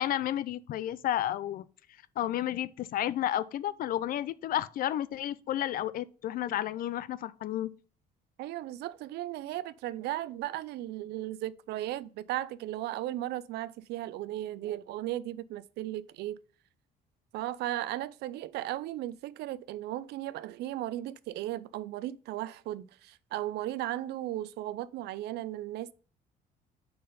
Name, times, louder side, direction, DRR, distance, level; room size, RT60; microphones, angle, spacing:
voice 1, 0.0-1.6 2.2-7.7, left 12 dB, 60° left, 0.5 m, -31 dB
voice 2, 8.4-16.4 17.3-25.9, right 14 dB, 75° right, 0.5 m, -36 dB
5.4 x 4.3 x 5.0 m
cardioid pair, 110°, 17 cm